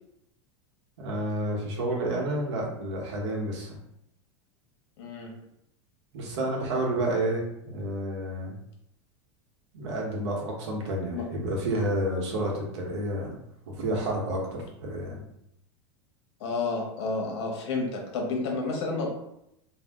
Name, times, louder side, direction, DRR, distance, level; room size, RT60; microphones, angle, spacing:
voice 1, 1.0-3.8 6.1-8.5 9.7-13.4 13.7-15.2, right 1 dB, 75° right, -1 dB, 1.1 m, -30 dB
voice 2, 5.0-5.3 11.1-11.2 16.4-19.1, left 3 dB, 70° left, 1 dB, 1.0 m, -30 dB
2.7 x 2.3 x 3.5 m, 0.80 s
supercardioid pair, 125°, 15 cm